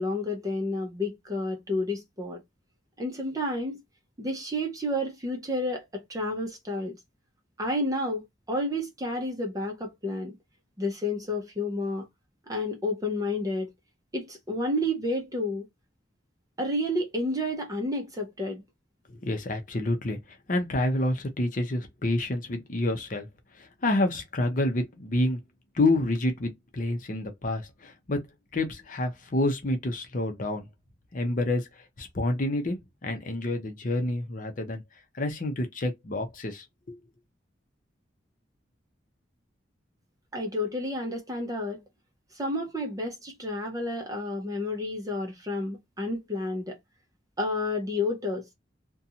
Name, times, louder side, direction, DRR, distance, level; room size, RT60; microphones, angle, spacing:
voice 1, 0.0-2.4 3.0-3.8 4.2-7.0 7.6-10.3 10.8-12.1 12.5-13.7 14.1-15.7 16.6-18.6 40.3-41.8 42.3-46.8 47.4-48.5, left 1 dB, 20° right, 0.6 m, -30 dB
voice 2, 19.1-20.2 20.5-23.3 23.6-25.4 25.7-28.2 28.5-30.7 31.1-31.7 32.0-34.8 35.1-37.0, left 1 dB, 45° left, 0.7 m, -28 dB
2.6 x 2.2 x 2.7 m
head